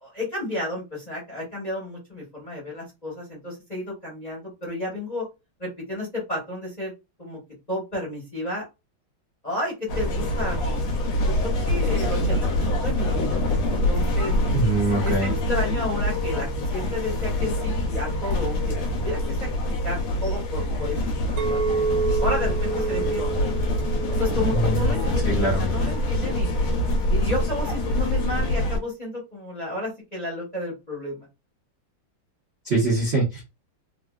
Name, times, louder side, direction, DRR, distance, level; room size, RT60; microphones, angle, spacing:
voice 1, 0.0-5.2 5.6-6.9 7.2-7.4 7.7-8.6 9.4-10.8 11.2-13.4 13.7-14.3 15.0-19.5 19.8-21.7 22.2-23.4 24.2-26.5 27.1-31.3, left 2 dB, 30° left, -3 dB, 0.9 m, -32 dB
sound 1, 9.9-28.8, left 1 dB, 85° left, 1.6 m, -25 dB
voice 2, 14.5-15.3 24.6-24.8 25.2-25.6 32.6-33.4, right 2 dB, 50° right, -5 dB, 0.7 m, -23 dB
Chink clink, 21.4-25.7 26.2-26.5, right 4 dB, 80° right, 1.4 m, -29 dB
3.5 x 2.3 x 2.3 m, 0.25 s
omnidirectional pair, 2.2 m